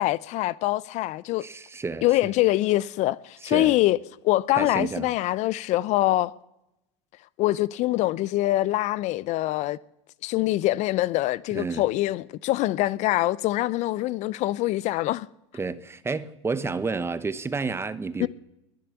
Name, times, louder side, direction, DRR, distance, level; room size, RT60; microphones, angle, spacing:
voice 1, 0.0-1.4 2.0-4.0 4.2-6.3 7.4-9.8 10.2-15.3 18.2-18.3, left 17 dB, 50° left, 0.5 m, -24 dB
voice 2, 1.4-2.1 3.4-3.7 4.6-5.1 11.5-11.8 15.5-18.3, right 4 dB, 15° right, 1.0 m, -30 dB
22.0 x 7.7 x 7.0 m
hypercardioid pair, 90°, 15 cm